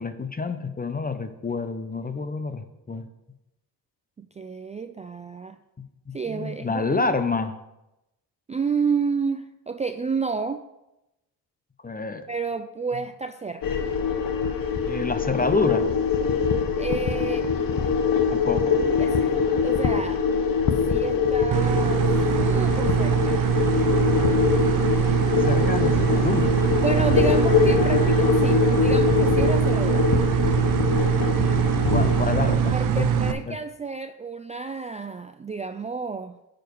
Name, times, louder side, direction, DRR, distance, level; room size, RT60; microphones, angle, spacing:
voice 1, 0.0-3.1 6.1-7.5 11.8-12.2 14.9-15.9 18.3-18.8 25.2-26.6 31.9-33.6, left 4 dB, 20° left, 10 dB, 0.7 m, -28 dB
voice 2, 4.2-5.6 6.1-7.1 8.5-10.6 12.3-13.8 16.8-17.5 19.0-19.4 19.6-20.2 20.9-23.4 26.8-30.1 32.7-36.4, right 5 dB, 15° right, 8 dB, 0.3 m, -30 dB
sound 1, 13.6-32.7, left 6 dB, 45° left, 1.1 m, -23 dB
sound 2, 21.5-33.3, right 9 dB, 45° right, 0.7 m, -23 dB
10.0 x 5.2 x 4.7 m, 0.92 s
supercardioid pair, 65°, 46 cm